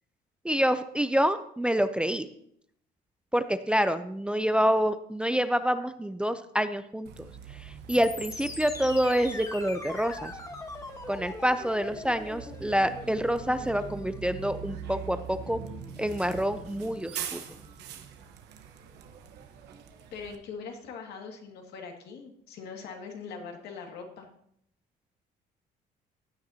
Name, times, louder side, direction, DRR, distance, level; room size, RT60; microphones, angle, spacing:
voice 1, 0.4-2.3 3.3-7.1 7.6-10.3 11.1-15.6 16.0-17.4, equal, 5° right, 10 dB, 0.5 m, -27 dB
Bus, 7.0-20.3, right 8 dB, 80° right, 1.2 m, -43 dB
sound 1, 7.9-17.9, left 2 dB, 20° left, 1.3 m, -43 dB
voice 2, 20.1-24.3, left 5 dB, 75° left, 2 dB, 2.2 m, -42 dB
15.5 x 9.4 x 2.8 m, 0.70 s
cardioid pair, 110°, 17 cm